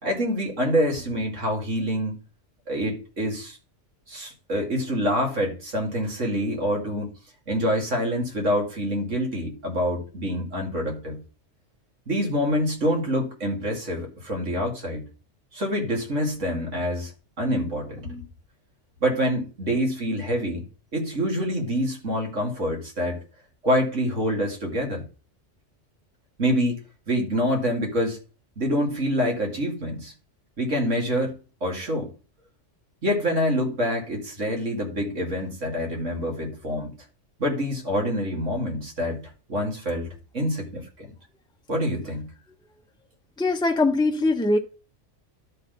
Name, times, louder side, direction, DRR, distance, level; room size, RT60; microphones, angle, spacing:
voice 1, 0.0-2.2 2.7-3.6 4.1-7.1 7.5-11.2 12.1-15.0 15.5-17.1 17.4-18.2 19.0-20.6 20.9-23.2 23.6-25.0 26.4-26.8 27.1-28.2 28.6-30.1 30.6-31.3 31.6-32.1 33.0-36.9 37.4-39.2 39.5-40.1 40.3-41.1 41.7-42.3, equal, 90° right, 3.0 m, -26 dB
voice 2, 43.4-44.6, left 2 dB, 5° left, 0.8 m, -21 dB
12.0 x 4.1 x 5.3 m
omnidirectional pair, 1.2 m